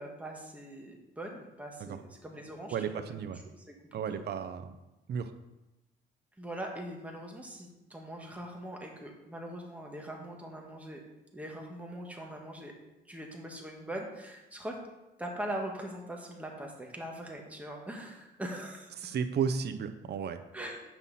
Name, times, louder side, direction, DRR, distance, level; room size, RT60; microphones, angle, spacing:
voice 1, 0.0-3.7 4.1-4.2 6.4-11.0 11.3-12.7 13.1-14.8 15.2-19.1 20.5-20.8, right 1 dB, 5° right, 0 dB, 1.6 m, -42 dB
voice 2, 2.7-3.4 3.9-4.7 5.1-5.3 19.0-20.4, right 7 dB, 55° right, 9 dB, 0.6 m, -33 dB
9.0 x 5.6 x 4.1 m, 0.98 s
cardioid pair, 90°, 20 cm